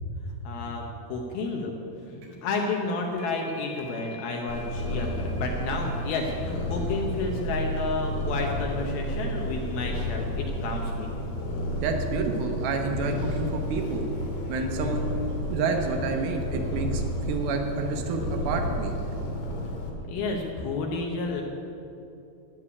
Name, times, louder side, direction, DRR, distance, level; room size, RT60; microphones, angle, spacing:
voice 1, 0.4-1.7 2.1-11.1 20.1-21.4, left 3 dB, 85° left, 1 dB, 2.1 m, -31 dB
sound 1, 2.2-2.5 2.8-10.1, equal, 55° right, 3.0 m, -49 dB
Purr, 4.5-19.9, equal, 65° left, 3.1 m, -31 dB
voice 2, 11.8-14.1 14.5-15.1 15.5-17.0 17.3-18.9, right 4 dB, 75° right, 4 dB, 2.3 m, -29 dB
12.5 x 6.7 x 9.9 m, 2.8 s
omnidirectional pair, 5.6 m